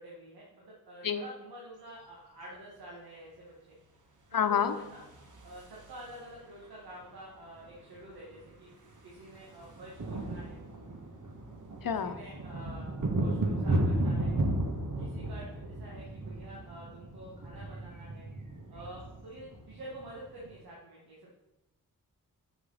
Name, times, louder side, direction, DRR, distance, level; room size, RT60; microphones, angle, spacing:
voice 1, 0.0-3.8 4.3-5.0 5.4-8.7 9.0-10.6 11.8-14.4 15.0-18.3 18.7-21.3, right 1 dB, 80° right, -5 dB, 1.9 m, -48 dB
voice 2, 4.3-4.7 11.8-12.2 15.0-15.1, left 7 dB, 65° left, 9 dB, 0.9 m, -28 dB
sound 1, 4.8-6.4 7.7-7.8 8.0-8.2 8.5-20.6, right 1 dB, 55° right, 1.6 m, -34 dB
6.7 x 6.1 x 5.7 m, 0.97 s
cardioid pair, 50°, 37 cm